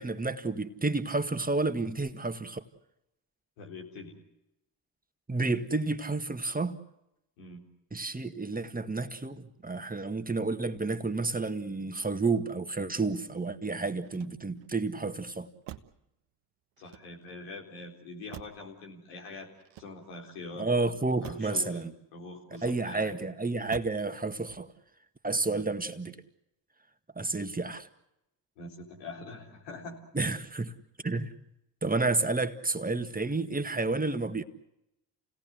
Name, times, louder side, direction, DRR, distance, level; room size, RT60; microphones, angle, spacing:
voice 1, 0.0-2.6 5.3-6.8 7.9-15.5 20.6-21.9 22.6-24.7 25.2-26.2 27.2-27.9 30.1-30.7 31.0-31.3 31.8-34.4, right 3 dB, 15° right, 1.9 m, -30 dB
voice 2, 3.6-4.2 7.4-7.6 16.8-19.5 19.8-20.7 21.2-21.8 22.1-23.1 25.5-25.7 28.6-30.0, left 3 dB, 75° left, 4.0 m, -44 dB
Motor vehicle (road), 14.0-14.8 15.6-16.1 16.8-17.5 18.3-18.8 19.6-20.3 21.2-21.6 22.5-23.1 23.7-24.1 24.4-24.9, right 13 dB, 65° right, 1.2 m, -48 dB
29.0 x 18.0 x 7.8 m
hypercardioid pair, 40°, 49 cm